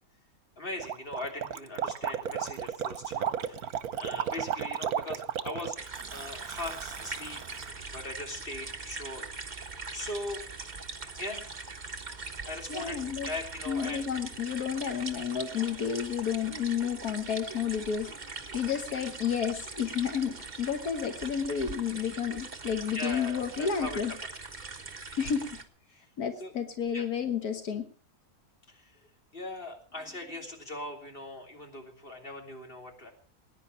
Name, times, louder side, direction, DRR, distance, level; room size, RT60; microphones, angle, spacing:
voice 1, 0.6-3.7 3.9-7.4 7.9-9.2 9.9-10.4 11.1-11.7 12.4-14.0 22.9-24.1 25.9-26.0 26.4-26.5 26.9-27.1 28.7-28.9 29.3-33.1, left 1 dB, 35° left, 2 dB, 3.3 m, -40 dB
Gurgling, 0.8-7.7, right 8 dB, 80° right, 1.4 m, -34 dB
sound 1, 5.8-25.6, right 4 dB, 30° right, 1.5 m, -42 dB
voice 2, 12.7-13.3 13.7-18.1 18.5-24.1 25.2-25.6 26.2-27.9, left 7 dB, 85° left, 7 dB, 1.8 m, -31 dB
20.0 x 10.0 x 5.5 m, 0.41 s
omnidirectional pair, 1.6 m